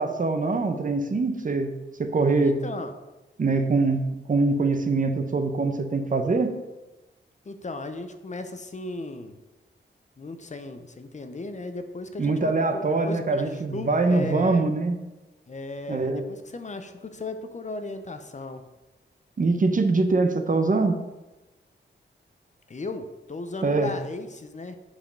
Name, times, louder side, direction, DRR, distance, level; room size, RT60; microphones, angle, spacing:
voice 1, 0.0-1.7 2.0-2.6 3.4-6.5 12.2-15.0 15.9-16.2 19.4-21.0 23.6-23.9, right 3 dB, 40° right, 7 dB, 0.7 m, -23 dB
voice 2, 2.4-2.9 7.4-9.3 10.2-14.6 15.5-18.6 22.7-24.8, left 2 dB, 35° left, 8 dB, 0.6 m, -36 dB
7.6 x 4.9 x 5.2 m, 1.1 s
wide cardioid pair, 155°, 20 cm